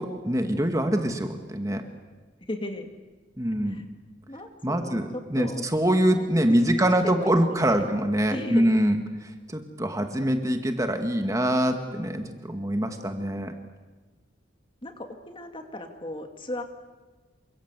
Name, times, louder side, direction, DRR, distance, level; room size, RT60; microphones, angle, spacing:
voice 1, 0.0-1.8 3.4-3.8 4.6-13.5, right 1 dB, 20° right, 5 dB, 1.9 m, -24 dB
voice 2, 2.5-2.9 3.7-3.8 4.3-5.6 6.5-7.9 8.3-8.8 14.8-16.6, left 1 dB, 25° left, 5 dB, 2.4 m, -36 dB
28.5 x 25.5 x 8.2 m, 1.3 s
head